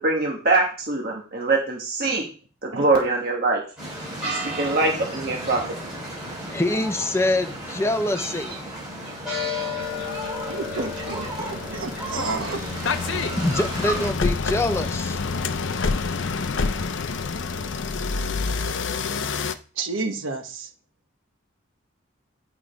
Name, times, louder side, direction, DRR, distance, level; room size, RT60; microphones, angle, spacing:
voice 1, 0.0-2.2 2.6-3.6 4.2-5.6, right 3 dB, 50° right, 0 dB, 1.3 m, -23 dB
sound 1, 3.8-14.1, left 1 dB, 5° right, 5.2 m, -32 dB
voice 2, 6.5-8.6 13.4-15.2, left 1 dB, 15° left, 8 dB, 0.5 m, -24 dB
sound 2, 8.1-8.2 8.7-19.5, left 4 dB, 65° left, 0.6 m, -28 dB
voice 3, 10.5-12.6 19.8-20.7, right 3 dB, 80° right, 5 dB, 1.1 m, -31 dB
9.0 x 4.8 x 5.0 m, 0.39 s
head